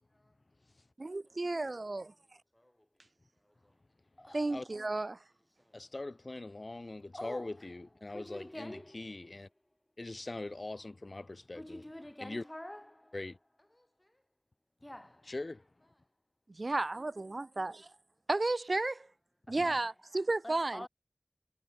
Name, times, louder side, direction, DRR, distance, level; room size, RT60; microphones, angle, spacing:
voice 1, 1.0-2.1 4.3-5.2 16.5-17.9 18.3-19.1 19.5-20.9, right 2 dB, 85° right, 0.7 m, -33 dB
voice 2, 4.2-4.7 5.7-5.8 7.1-9.2 11.5-13.3 13.6-14.1 14.8-15.5 15.8-15.9 17.5-17.6 19.5-19.9 20.4-20.9, left 1 dB, 25° left, 4.3 m, -48 dB
voice 3, 5.7-9.5 10.0-11.9 12.2-12.4 13.1-13.4 15.2-15.6 19.5-19.8, left 2 dB, 75° left, 6.9 m, -42 dB
wide cardioid pair, 45°, 0 cm